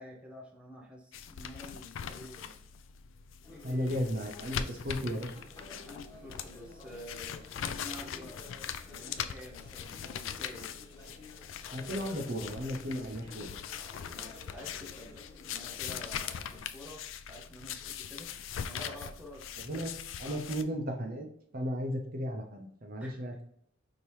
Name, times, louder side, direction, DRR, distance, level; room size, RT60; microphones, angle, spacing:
voice 1, 0.0-2.6 3.5-4.1 5.9-8.4 8.9-10.7 11.9-12.3 14.1-17.0 17.3-18.3 18.6-19.9 20.2-20.7 23.0-23.4, left 1 dB, 5° right, -1 dB, 0.7 m, -49 dB
sound 1, 1.1-20.6, left 8 dB, 75° left, 0.4 m, -41 dB
sound 2, 3.4-16.6, left 1 dB, 15° left, 1.4 m, -53 dB
voice 2, 3.6-5.4 11.7-13.6 19.6-19.9 20.2-21.3 21.5-23.4, equal, 50° right, 3 dB, 0.8 m, -35 dB
5.1 x 2.8 x 3.0 m, 0.66 s
head